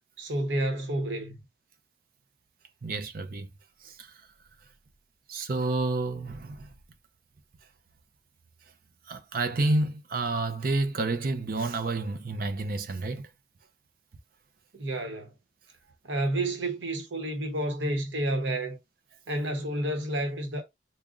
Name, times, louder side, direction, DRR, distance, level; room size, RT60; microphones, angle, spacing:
voice 1, 0.2-1.4 14.7-15.3 16.0-18.8 19.3-20.6, right 1 dB, 80° right, 0.9 m, -30 dB
voice 2, 2.8-3.5 3.8-4.1 5.3-6.7 9.1-13.3, right 2 dB, 50° right, 0.5 m, -29 dB
3.6 x 2.1 x 3.7 m
head